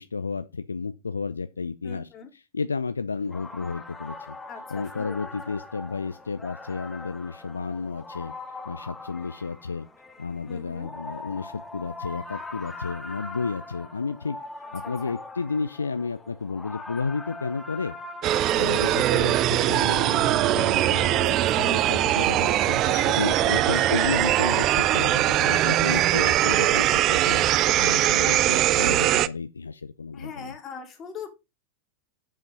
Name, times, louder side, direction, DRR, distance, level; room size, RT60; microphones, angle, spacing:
voice 1, 0.0-4.4 4.7-8.3 8.6-9.9 10.2-14.4 14.7-18.0 18.6-27.4 27.8-30.6, left 4 dB, 75° left, 0.5 m, -32 dB
voice 2, 1.8-2.3 4.5-5.3 10.5-10.9 15.1-15.2 18.9-19.1 21.1-21.7 23.7-24.1 25.8-26.2 30.1-31.3, left 6 dB, 30° left, 2.5 m, -42 dB
sound 1, 3.1-19.4, left 2 dB, 10° left, 1.2 m, -42 dB
sound 2, 18.2-29.3, right 13 dB, 35° right, 0.4 m, -21 dB
7.4 x 5.3 x 5.2 m
figure-of-eight pair, 90°, 0 cm